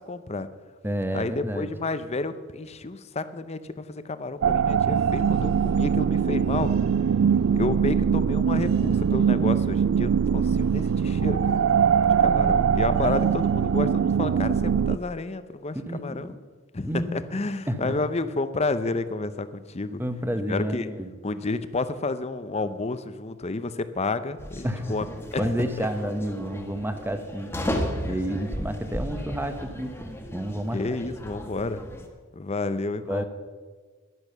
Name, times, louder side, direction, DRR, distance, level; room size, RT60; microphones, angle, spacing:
voice 1, 0.1-0.5 1.1-6.7 7.5-11.6 12.2-16.3 16.7-20.0 20.5-20.9 21.2-25.1 25.3-25.5 25.8-25.9 28.1-28.2 30.7-31.9 32.3-33.2, left 3 dB, 30° left, 12 dB, 0.6 m, -30 dB
voice 2, 0.8-1.7 12.3-12.6 13.0-13.3 15.9-16.4 16.8-17.1 17.7-18.0 20.0-21.1 24.6-25.1 25.4-27.5 28.0-30.8 33.1-33.2, equal, 10° right, 8 dB, 0.9 m, -30 dB
sound 1, 4.4-15.0, right 7 dB, 70° right, 0.3 m, -22 dB
sound 2, 24.4-32.1, equal, 10° left, 1.2 m, -35 dB
11.0 x 10.5 x 6.7 m, 1.5 s
head